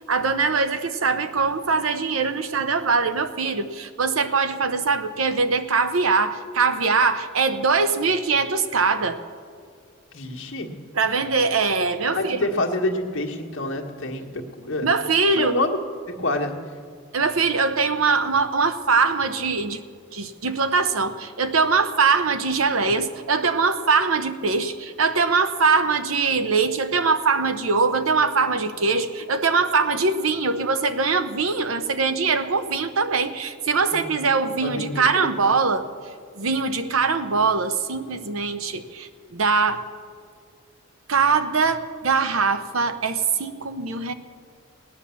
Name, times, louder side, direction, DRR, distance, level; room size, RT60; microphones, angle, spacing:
voice 1, 0.1-9.2 10.9-12.5 14.8-15.6 17.1-19.8 20.1-35.9 36.4-39.8 41.1-44.1, right 4 dB, 90° right, 10 dB, 0.8 m, -22 dB
voice 2, 10.1-10.7 12.1-14.9 15.3-15.8 16.1-16.5 22.8-23.0 33.9-34.3 34.6-35.3, left 2 dB, 75° left, 0 dB, 1.6 m, -27 dB
17.5 x 9.8 x 7.1 m, 2.1 s
head